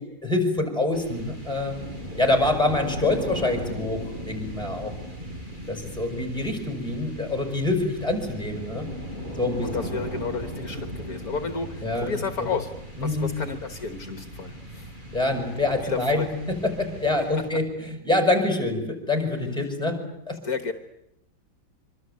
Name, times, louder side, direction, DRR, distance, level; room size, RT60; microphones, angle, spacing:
voice 1, 0.0-1.8 2.2-4.9 5.7-8.9 9.4-9.7 11.8-12.5 13.0-13.3 15.1-20.0 20.3-20.4, left 2 dB, ahead, 5 dB, 5.9 m, -26 dB
sound 1, 0.9-17.9, equal, 25° right, 5.8 m, -37 dB
voice 2, 9.6-12.7 13.0-14.9 15.8-16.3 20.4-20.7, left 5 dB, 60° left, 8 dB, 1.9 m, -32 dB
25.0 x 25.0 x 8.4 m, 0.84 s
omnidirectional pair, 1.8 m